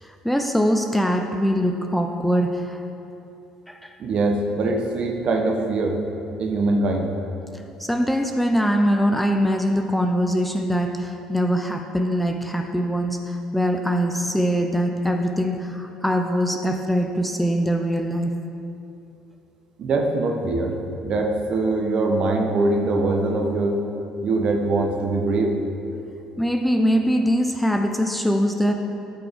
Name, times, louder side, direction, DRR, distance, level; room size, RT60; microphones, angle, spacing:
voice 1, 0.0-2.8 3.7-3.9 7.8-18.3 26.4-28.7, equal, 5° left, 4 dB, 0.7 m, -22 dB
voice 2, 4.0-6.0 6.4-7.2 19.8-23.8 24.2-25.6, right 2 dB, 50° right, 2 dB, 1.2 m, -22 dB
13.0 x 5.9 x 3.6 m, 2.8 s
hypercardioid pair, 55°, 2 cm